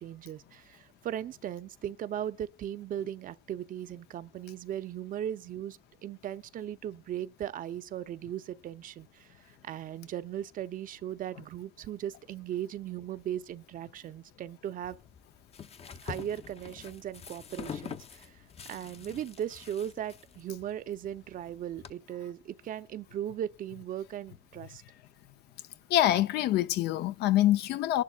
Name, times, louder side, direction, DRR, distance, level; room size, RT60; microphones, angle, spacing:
voice 1, 0.0-9.3 9.6-15.0 16.0-18.4 18.7-24.8, right 10 dB, 55° right, 0.7 m, -38 dB
sound 1, 14.8-21.9, left 7 dB, 35° left, 0.7 m, -45 dB
voice 2, 25.9-28.0, left 13 dB, 80° left, 0.6 m, -25 dB
22.0 x 11.5 x 2.4 m
cardioid pair, 110°, 17 cm